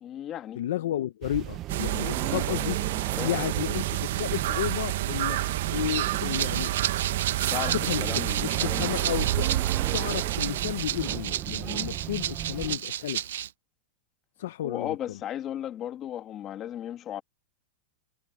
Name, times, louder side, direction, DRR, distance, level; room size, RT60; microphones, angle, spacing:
voice 1, 0.0-0.6 3.2-3.5 7.5-9.1 14.6-17.2, left 11 dB, 20° left, 1.9 m, -36 dB
voice 2, 0.6-2.8 3.2-5.4 5.7-6.7 7.7-9.5 9.9-13.4 14.4-15.0, left 12 dB, 65° left, 0.7 m, -32 dB
sound 1, 1.2-12.8, right 15 dB, 25° right, 0.6 m, -35 dB
sound 2, 1.7-11.3, right 13 dB, 60° right, 0.9 m, -30 dB
Rattle (instrument), 6.3-13.5, right 11 dB, 85° right, 0.9 m, -33 dB
supercardioid pair, 175°, 0 cm